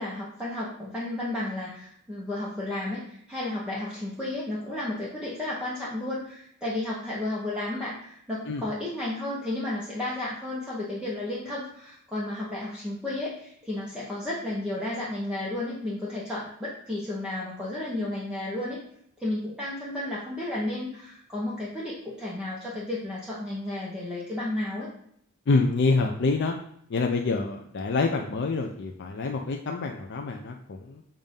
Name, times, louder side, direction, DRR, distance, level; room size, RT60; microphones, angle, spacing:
voice 1, 0.0-18.8 19.2-24.9, left 1 dB, 5° right, -7 dB, 1.0 m, -32 dB
voice 2, 25.5-26.6 26.9-31.0, left 3 dB, 55° left, 3 dB, 0.5 m, -26 dB
7.2 x 2.6 x 5.2 m, 0.69 s
head